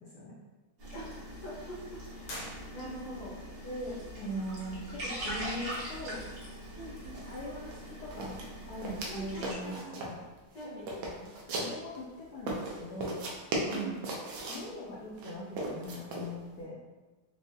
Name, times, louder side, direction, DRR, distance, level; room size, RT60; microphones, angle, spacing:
voice 1, 0.0-0.3 3.6-6.2 7.3-8.4 8.7-10.2 11.5-13.2 13.6-14.1 14.5-16.8, equal, 70° left, -7 dB, 1.0 m, -40 dB
sound 1, 0.8-9.5, right 1 dB, 60° right, 1.5 m, -42 dB
voice 2, 0.9-2.3 2.7-3.4 6.8-7.2 9.1-10.0 10.5-11.3 13.7-14.1, right 1 dB, 40° left, -7 dB, 0.6 m, -44 dB
sound 2, 2.2-3.3, left 1 dB, 90° left, 1.7 m, -44 dB
sound 3, 7.1-7.3 7.6-7.8 8.1-9.1 9.4-10.2 10.6-12.0 12.5-14.7 15.2-16.3, right 2 dB, 75° right, 1.4 m, -37 dB
4.6 x 2.0 x 2.6 m, 1.2 s
omnidirectional pair, 2.3 m